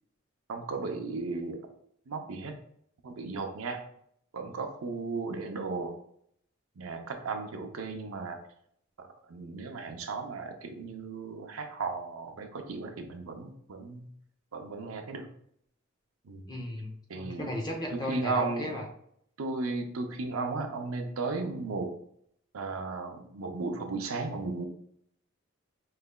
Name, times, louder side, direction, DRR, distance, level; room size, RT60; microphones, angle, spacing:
voice 1, 0.5-1.6 2.1-2.5 3.0-3.8 4.3-5.9 6.8-8.4 9.3-14.1 14.5-15.3 16.3-16.4 17.1-17.5 17.9-18.7 19.4-21.9 22.5-24.7, right 3 dB, 75° right, 5 dB, 0.6 m, -35 dB
voice 2, 16.5-18.8, left 1 dB, 20° left, 1 dB, 0.6 m, -35 dB
4.7 x 3.2 x 2.2 m, 0.71 s
head